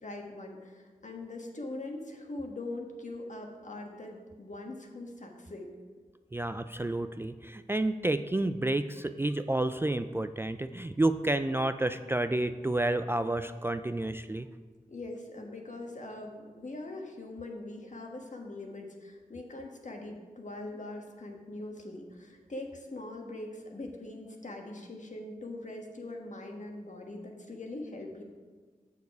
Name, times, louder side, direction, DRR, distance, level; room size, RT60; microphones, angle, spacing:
voice 1, 0.0-5.7 14.9-28.2, left 2 dB, 55° left, 2 dB, 1.4 m, -42 dB
voice 2, 6.3-14.5, right 2 dB, 15° right, 10 dB, 0.3 m, -30 dB
6.9 x 6.7 x 4.7 m, 1.4 s
cardioid pair, 40°, 15 cm